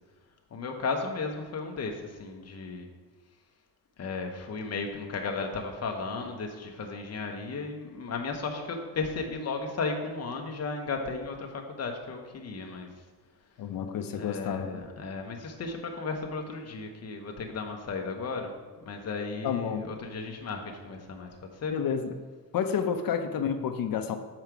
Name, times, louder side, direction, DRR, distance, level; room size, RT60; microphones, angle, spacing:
voice 1, 0.5-2.9 4.0-12.9 14.1-18.5 18.8-21.7, left 4 dB, 40° left, 3 dB, 1.0 m, -35 dB
voice 2, 13.6-14.8 19.4-19.9 21.7-22.1 22.5-24.2, left 7 dB, 60° left, 7 dB, 0.7 m, -30 dB
7.4 x 5.0 x 4.6 m, 1.4 s
cardioid pair, 145°, 39 cm